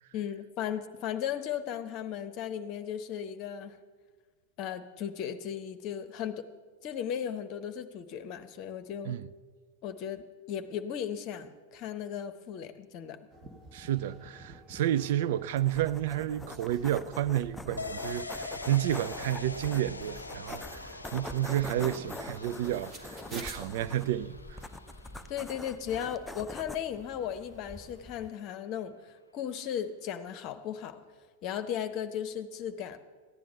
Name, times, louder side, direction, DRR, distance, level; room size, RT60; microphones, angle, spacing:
voice 1, 0.1-3.8 4.6-6.5 6.8-9.2 9.8-13.2 25.3-31.0 31.4-33.0, left 9 dB, 40° left, 0.9 m, -36 dB
sound 1, 13.3-23.6, right 1 dB, 25° right, 1.9 m, -51 dB
voice 2, 13.7-24.6, right 12 dB, 55° right, 0.4 m, -31 dB
sound 2, 15.6-28.3, left 2 dB, 5° left, 0.5 m, -45 dB
sound 3, 17.8-27.2 27.5-27.6, left 3 dB, 80° left, 0.4 m, -44 dB
14.5 x 10.5 x 5.7 m
figure-of-eight pair, 90°, 0 cm